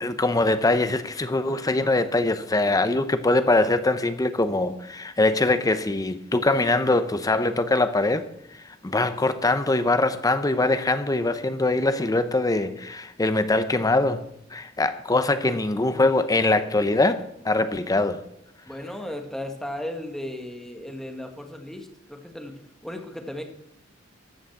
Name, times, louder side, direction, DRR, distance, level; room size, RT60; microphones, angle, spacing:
voice 1, 0.0-8.3 8.8-18.2, left 2 dB, 20° left, 0.7 m, -23 dB
voice 2, 18.7-23.4, left 1 dB, ahead, 1.3 m, -36 dB
12.5 x 6.3 x 7.8 m
head